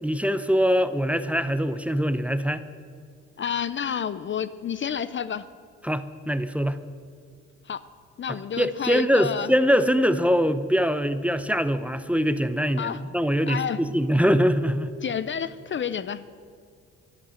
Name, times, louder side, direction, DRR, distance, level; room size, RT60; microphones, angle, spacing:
voice 1, 0.0-2.6 5.8-6.8 8.3-15.0, equal, 5° right, 12 dB, 0.7 m, -23 dB
voice 2, 3.4-5.5 7.7-7.8 8.2-9.5 12.8-13.0 13.5-13.8 15.0-16.4, left 8 dB, 40° left, 15 dB, 0.5 m, -29 dB
12.0 x 11.5 x 8.8 m, 2.2 s
cardioid pair, 90°, 30 cm